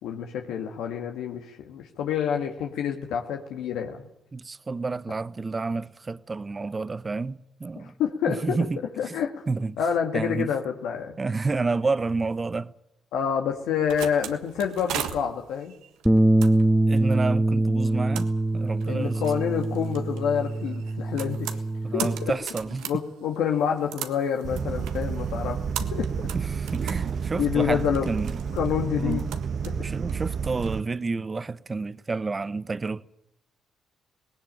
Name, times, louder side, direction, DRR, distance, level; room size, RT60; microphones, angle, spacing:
voice 1, 0.0-4.1 7.8-8.6 9.0-9.4 9.8-11.2 13.1-15.7 18.9-21.5 21.9-22.1 22.8-26.1 27.4-28.1 28.5-29.2 29.6-29.8, left 8 dB, 80° left, 1.7 m, -28 dB
voice 2, 4.3-7.9 8.3-8.8 9.1-9.2 9.5-9.8 10.1-10.5 11.2-12.7 16.9-19.2 21.8-22.9 26.3-28.4 29.0-29.2 29.8-33.1, right 3 dB, 30° right, 0.9 m, -30 dB
sound 1, 13.6-30.8, right 10 dB, 85° right, 1.5 m, -40 dB
Bass guitar, 16.1-22.3, right 1 dB, ahead, 1.6 m, -24 dB
sound 2, 24.4-30.8, right 6 dB, 55° right, 1.1 m, -30 dB
18.5 x 17.5 x 8.9 m
supercardioid pair, 75°, 0 cm